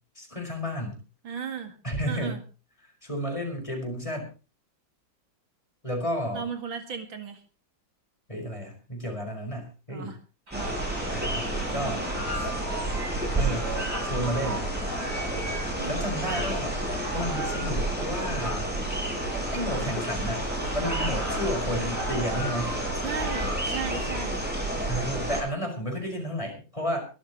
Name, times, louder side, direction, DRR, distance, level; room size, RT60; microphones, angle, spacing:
voice 1, 0.2-1.0 1.8-2.4 3.0-4.3 5.8-6.5 8.3-10.1 11.1-12.0 12.3-12.5 13.4-13.7 14.0-14.6 15.8-16.8 17.1-18.7 19.5-22.8 24.9-27.1, equal, 15° left, 2 dB, 5.5 m, -32 dB
voice 2, 1.2-1.8 2.1-2.4 6.3-7.4 9.9-10.2 10.5-11.3 11.6-12.1 15.8-16.2 23.0-24.5, right 6 dB, 80° right, 6 dB, 2.8 m, -36 dB
sound 1, 10.5-25.4, right 1 dB, 5° right, 7.1 m, -30 dB
sound 2, 10.5-24.0, right 1 dB, 55° right, 5.2 m, -38 dB
23.5 x 13.5 x 3.1 m, 0.34 s
omnidirectional pair, 2.1 m